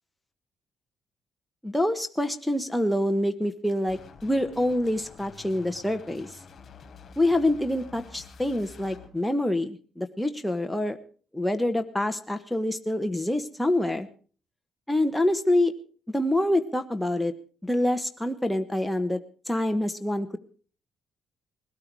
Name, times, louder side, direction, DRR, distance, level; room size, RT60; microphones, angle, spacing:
voice 1, 1.6-6.3 7.2-11.0 11.3-14.1 14.9-15.7 16.1-17.3 17.6-19.2 19.5-20.4, left 1 dB, 5° left, 6 dB, 1.3 m, -26 dB
sound 1, 3.9-9.1, left 6 dB, 50° left, 3.6 m, -48 dB
20.0 x 13.5 x 4.8 m, 0.41 s
cardioid pair, 90°, 0 cm